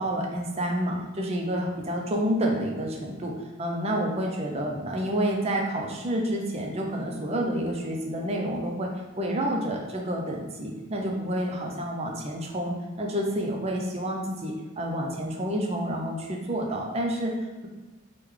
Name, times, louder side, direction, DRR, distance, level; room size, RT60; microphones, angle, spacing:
voice 1, 0.0-3.3 3.6-17.3, right 1 dB, 30° right, 1 dB, 0.4 m, -29 dB
3.6 x 2.2 x 3.1 m, 1.2 s
head